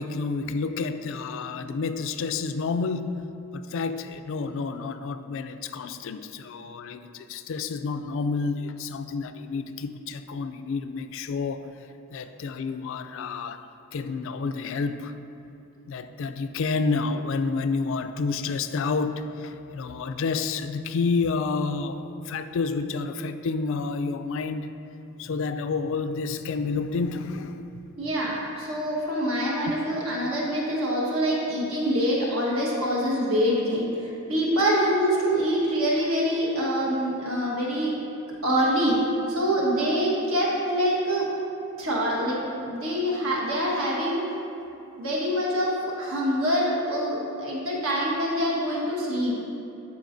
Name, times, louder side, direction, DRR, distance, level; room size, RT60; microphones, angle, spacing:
voice 1, 0.0-3.2 3.5-11.7 12.1-13.6 13.9-15.1 15.9-24.7 25.2-27.7 34.9-35.0, left 4 dB, 65° left, 10 dB, 0.3 m, -29 dB
voice 2, 28.0-37.9 38.4-39.0 39.3-41.3 41.8-44.2 45.0-49.3, equal, 70° right, -4 dB, 1.5 m, -25 dB
12.0 x 4.9 x 2.6 m, 2.7 s
head